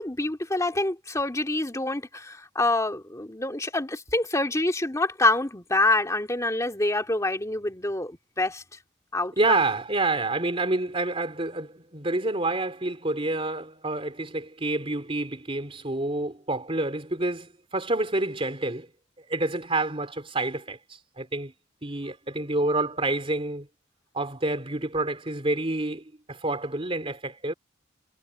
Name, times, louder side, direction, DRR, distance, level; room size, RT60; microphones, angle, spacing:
voice 1, 0.0-8.6 9.1-9.6, left 2 dB, 15° left, 2.5 m, -26 dB
voice 2, 9.4-18.9 19.2-21.5 21.8-23.7 24.1-27.5, right 2 dB, 30° right, 3.4 m, -28 dB
head